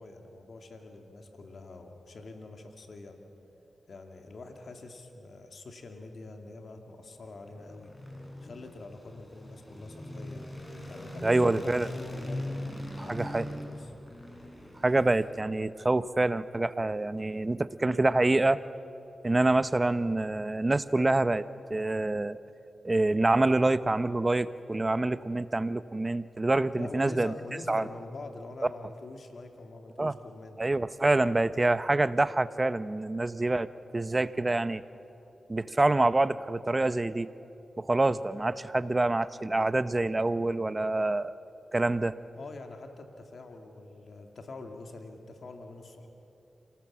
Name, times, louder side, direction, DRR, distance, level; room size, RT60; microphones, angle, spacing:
voice 1, 0.0-3.2 3.9-7.9 8.4-10.4 10.9-13.9 26.7-30.6 42.4-46.1, left 2 dB, 70° left, 4 dB, 2.3 m, -45 dB
sound 1, 7.3-15.7, left 1 dB, 25° left, 5.8 m, -41 dB
voice 2, 11.2-11.9 13.0-13.4 14.8-18.6 19.2-22.4 22.8-27.3 27.7-27.9 30.0-30.1 30.6-34.8 35.5-37.3 37.8-41.3 41.7-42.2, right 2 dB, 30° right, 14 dB, 0.8 m, -26 dB
27.5 x 18.5 x 7.4 m, 2.9 s
cardioid pair, 45°, 0 cm